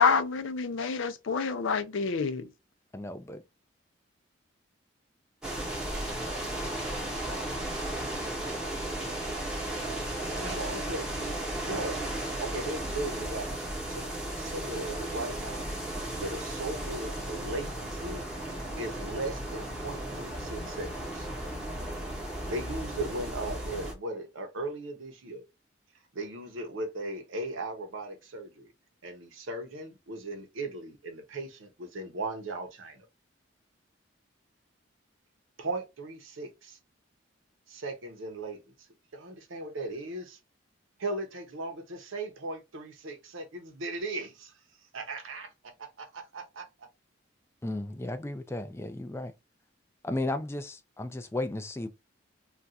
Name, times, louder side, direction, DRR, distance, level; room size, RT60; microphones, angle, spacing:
voice 1, 0.0-2.5, left 5 dB, 80° left, 0.5 m, -27 dB
voice 2, 2.9-3.4 47.6-49.3 50.0-51.9, left 2 dB, 15° left, 0.3 m, -34 dB
sound 1, 5.4-23.9, right 1 dB, 5° right, 0.8 m, -35 dB
voice 3, 10.2-11.4 11.6-12.0 12.4-15.7 16.2-21.3 22.4-25.4 26.1-28.7 29.0-33.0 35.6-36.8 37.7-38.9 39.1-40.4 41.0-44.6 44.9-46.7, right 2 dB, 85° right, 0.7 m, -38 dB
2.4 x 2.3 x 4.0 m
head